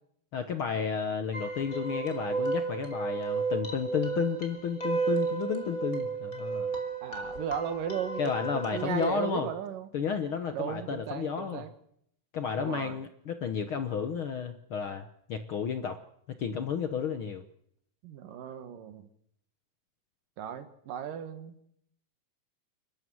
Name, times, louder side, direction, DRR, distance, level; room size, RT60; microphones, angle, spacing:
voice 1, 0.3-6.7 8.2-9.5 9.9-11.6 12.3-16.0 16.4-17.4, left 6 dB, 65° left, 8 dB, 1.3 m, -32 dB
sound 1, 1.3-9.2, right 4 dB, 25° left, 3.3 m, -33 dB
voice 2, 7.0-9.9 10.5-11.7 12.6-13.0 18.0-19.1 20.4-21.7, right 9 dB, 85° right, 10 dB, 3.3 m, -36 dB
29.0 x 13.0 x 7.8 m, 0.71 s
omnidirectional pair, 3.7 m